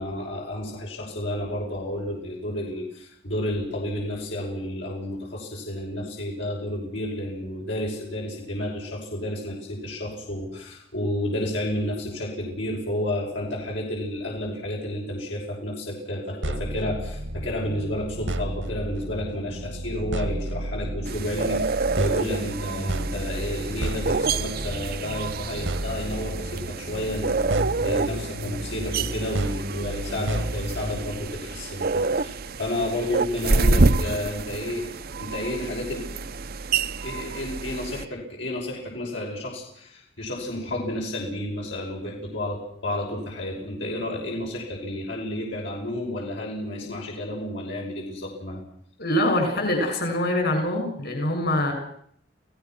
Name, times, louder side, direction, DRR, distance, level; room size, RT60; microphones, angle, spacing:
voice 1, 0.0-27.4 27.8-34.9 35.2-36.1 37.0-48.6, left 1 dB, 75° left, -2 dB, 6.2 m, -31 dB
sound 1, 16.4-31.2, right 1 dB, 85° right, 2.0 m, -32 dB
sound 2, 21.0-38.0, right 3 dB, 55° right, 0.8 m, -28 dB
voice 2, 49.0-51.7, left 1 dB, 60° left, 3 dB, 7.0 m, -24 dB
29.5 x 17.5 x 6.1 m, 0.65 s
head